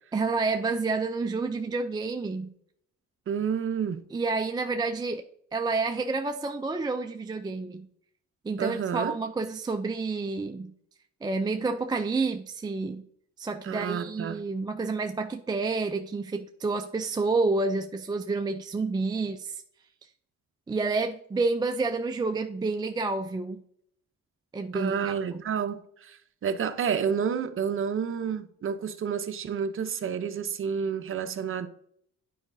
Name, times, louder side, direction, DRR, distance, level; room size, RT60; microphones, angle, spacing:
voice 1, 0.1-2.5 4.1-5.3 5.5-7.9 8.4-10.7 11.2-13.1 13.4-19.6 20.7-23.6 24.5-25.4, right 3 dB, 15° right, 0.4 m, -29 dB
voice 2, 3.3-4.0 8.6-9.2 13.6-14.4 24.7-31.7, right 7 dB, 45° right, 0.7 m, -30 dB
9.5 x 4.9 x 2.6 m
cardioid pair, 90°, 30 cm